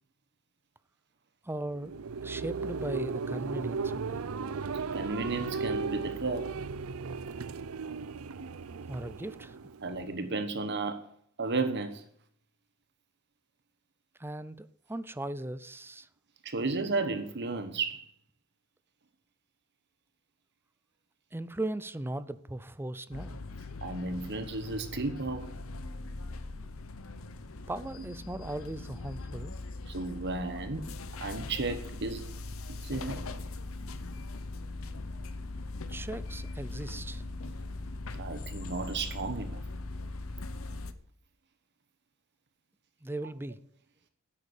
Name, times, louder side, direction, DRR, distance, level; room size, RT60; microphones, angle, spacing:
voice 1, 1.4-1.9 2.2-4.3 8.9-9.6 14.2-16.1 21.3-23.4 27.7-29.6 35.9-37.2 43.0-43.6, right 1 dB, 10° right, 0.5 m, -38 dB
sound 1, 1.6-10.3, right 4 dB, 80° right, 0.6 m, -36 dB
voice 2, 4.7-6.5 9.8-11.1 11.4-12.0 16.4-18.1 23.8-25.5 29.9-30.9 31.2-32.3 32.8-33.2 38.1-39.6, right 3 dB, 55° right, 1.2 m, -33 dB
sound 2, 23.1-40.9, left 2 dB, 70° left, 0.9 m, -40 dB
10.5 x 8.7 x 8.4 m
head